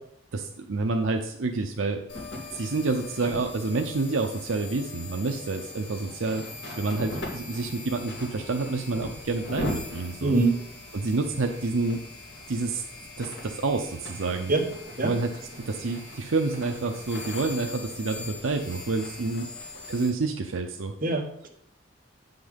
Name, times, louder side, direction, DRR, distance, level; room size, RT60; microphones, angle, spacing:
voice 1, 0.3-2.0 2.5-6.4 6.8-10.4 10.9-12.0 12.5-12.8 13.2-14.5 15.0-15.3 15.6-19.5 19.9-20.9, right 3 dB, 75° right, 4 dB, 0.7 m, -28 dB
sound 1, 2.1-20.1, left 2 dB, 60° left, 2.8 m, -40 dB
voice 2, 10.2-10.6 14.5-14.6 15.0-15.1 21.0-21.5, right 3 dB, 45° right, 0 dB, 1.7 m, -23 dB
8.8 x 6.0 x 5.1 m, 0.67 s
head